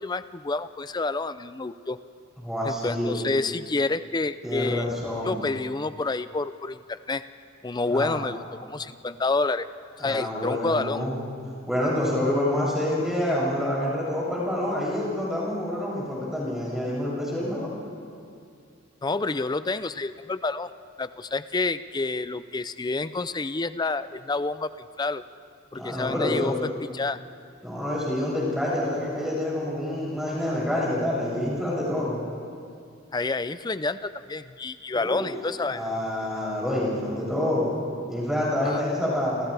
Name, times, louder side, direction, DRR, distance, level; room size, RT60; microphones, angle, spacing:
voice 1, 0.0-2.0 2.6-4.9 5.2-7.2 7.6-9.7 10.0-11.1 19.0-20.7 21.0-24.7 25.0-25.2 25.7-27.2 33.1-35.9 38.6-38.8, left 3 dB, 20° left, 13 dB, 0.5 m, -28 dB
voice 2, 2.4-3.2 4.4-5.4 7.9-8.2 10.0-11.2 11.7-17.7 25.7-26.6 27.6-32.2 34.9-35.3 35.7-37.7 38.1-39.5, left 1 dB, ahead, -7 dB, 7.4 m, -27 dB
30.0 x 28.0 x 3.4 m, 2.4 s
head